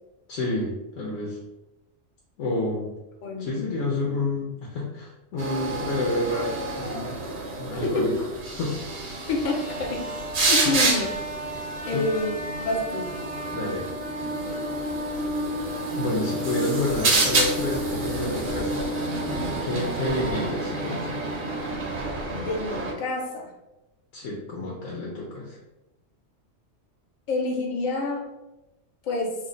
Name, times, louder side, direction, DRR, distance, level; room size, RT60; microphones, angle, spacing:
voice 1, 0.3-1.4 2.4-2.9 3.4-7.2 7.6-8.1 8.6-8.8 10.6-10.8 11.9-12.1 13.5-13.9 15.9-18.9 19.6-21.1 24.1-25.6, left 2 dB, 75° left, -4 dB, 1.0 m, -29 dB
voice 2, 3.2-3.6 7.8-8.1 9.3-11.1 11.5-13.3 22.3-23.5 27.3-28.2 29.0-29.4, left 2 dB, 50° left, 0 dB, 0.6 m, -28 dB
sound 1, 5.4-22.9, right 2 dB, 50° right, 0.6 m, -28 dB
2.6 x 2.1 x 3.7 m, 0.97 s
omnidirectional pair, 1.4 m